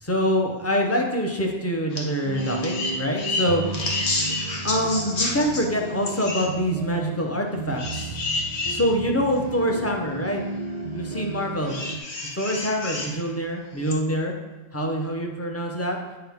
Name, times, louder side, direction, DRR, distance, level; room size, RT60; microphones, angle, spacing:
voice 1, 0.0-3.6 4.6-8.4 8.7-10.4 10.9-11.7 12.4-14.3 14.7-16.0, equal, 15° left, 1 dB, 0.5 m, -25 dB
sound 1, 1.9-2.1 2.3-5.6 6.0-6.5 7.8-8.8 9.5-9.6 11.6-13.1 13.8-13.9, left 2 dB, 65° left, 1.2 m, -29 dB
sound 2, 2.2-12.0, right 3 dB, 75° right, 0.3 m, -34 dB
7.7 x 4.6 x 3.5 m, 1.2 s
omnidirectional pair, 1.2 m